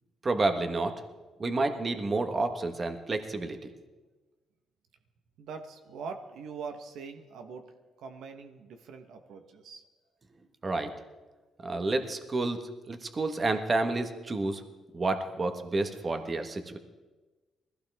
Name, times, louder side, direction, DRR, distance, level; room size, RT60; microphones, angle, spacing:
voice 1, 0.2-0.9 1.4-3.6 10.6-10.9 11.6-12.6 12.9-14.6 14.9-16.8, right 2 dB, 35° right, 7 dB, 1.4 m, -29 dB
voice 2, 5.4-7.7 8.0-9.8, right 5 dB, 80° right, 6 dB, 1.2 m, -42 dB
21.0 x 15.5 x 3.6 m, 1.2 s
cardioid pair, 90°, 0 cm